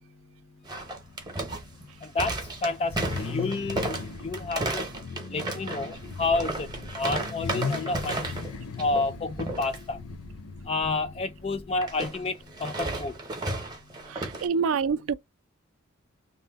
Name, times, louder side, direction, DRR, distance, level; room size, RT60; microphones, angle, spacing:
sound 1, 0.6-8.5 8.8-9.1 9.4-9.8 11.8-14.5, right 2 dB, 20° right, 0.7 m, -33 dB
Car / Idling / Accelerating revving vroom, 0.7-12.8, left 4 dB, 90° left, 0.7 m, -39 dB
voice 1, 2.6-2.9 3.2-4.0 4.2-4.9 5.3-6.7 7.0-8.3 8.8-10.0 10.7-12.3 12.6-13.1, left 3 dB, 30° left, 0.3 m, -29 dB
voice 2, 14.1-15.1, right 5 dB, 70° right, 0.3 m, -26 dB
2.7 x 2.0 x 3.3 m
head